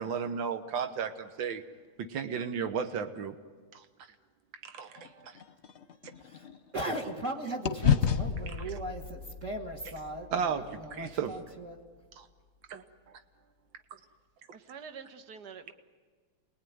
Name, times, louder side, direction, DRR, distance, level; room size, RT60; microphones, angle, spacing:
voice 1, 0.0-1.6 2.0-3.4 3.7-3.9 4.6-5.4 10.3-11.4 12.2-12.3 12.7-12.8, right 6 dB, 85° right, 8 dB, 1.9 m, -34 dB
sound 1, 5.0-7.3 7.6-11.9, left 8 dB, 45° left, 1.0 m, -32 dB
voice 2, 6.7-11.8, right 1 dB, 40° right, 1 dB, 2.2 m, -38 dB
voice 3, 14.5-15.7, right 6 dB, 60° right, 7 dB, 1.9 m, -46 dB
28.5 x 21.0 x 9.4 m, 1.5 s
omnidirectional pair, 2.1 m